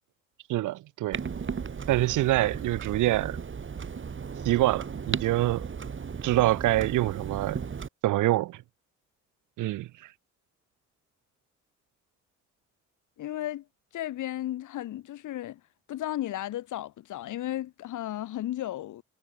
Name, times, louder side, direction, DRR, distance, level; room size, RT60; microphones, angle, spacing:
voice 1, 0.5-1.2 1.9-3.4 4.4-5.7 6.2-7.6 8.0-8.6 9.6-9.9, right 16 dB, 85° right, 1.1 m, -25 dB
Clock, 1.1-7.9, right 6 dB, 40° right, 6.6 m, -36 dB
voice 2, 13.2-13.6 13.9-15.6 15.9-19.0, left 13 dB, 80° left, 3.9 m, -34 dB
cardioid pair, 90°, 30 cm